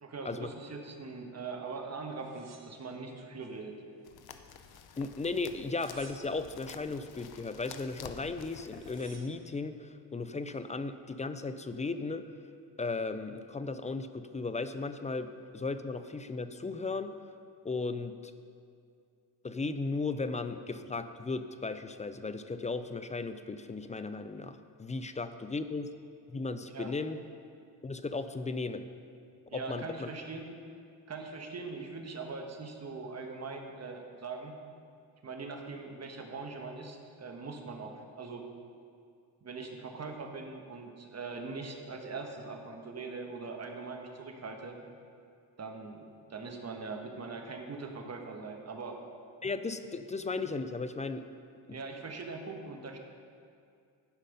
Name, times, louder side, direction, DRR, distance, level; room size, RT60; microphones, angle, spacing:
voice 1, 0.0-3.7 26.7-26.9 29.5-30.5 31.1-34.5 35.2-38.5 39.4-44.8 45.6-49.0 51.7-53.0, right 4 dB, 35° right, 3 dB, 1.2 m, -41 dB
sound 1, 2.2-3.6 4.0-4.8 5.5-6.6 8.2-8.3 8.5-9.5 10.2-10.7, right 5 dB, 60° right, 1.2 m, -58 dB
sound 2, 4.0-9.2, left 7 dB, 55° left, 0.7 m, -50 dB
voice 2, 5.0-12.2 12.8-17.1 17.6-18.3 19.4-25.9 26.3-27.2 27.8-28.8 29.5-30.1 49.4-51.3 51.7-51.8, left 3 dB, 20° left, 10 dB, 0.3 m, -36 dB
11.5 x 5.4 x 5.3 m, 2.3 s
cardioid pair, 85°, 44 cm